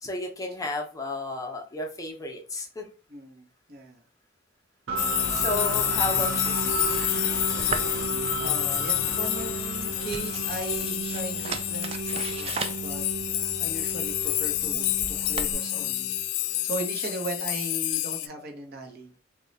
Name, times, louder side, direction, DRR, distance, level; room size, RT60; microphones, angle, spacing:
voice 1, 0.0-2.9 5.3-6.6, left 2 dB, 20° left, 2 dB, 0.6 m, -32 dB
voice 2, 3.1-4.0 8.4-13.0 13.4-16.1 16.6-19.2, right 2 dB, 50° right, 3 dB, 0.8 m, -37 dB
sound 1, 4.9-16.6, right 4 dB, 90° right, 0.7 m, -34 dB
sound 2, 5.0-18.3, left 15 dB, 75° left, 0.3 m, -29 dB
sound 3, 7.6-15.5, right 5 dB, 30° right, 0.3 m, -39 dB
3.1 x 2.3 x 3.9 m, 0.35 s
head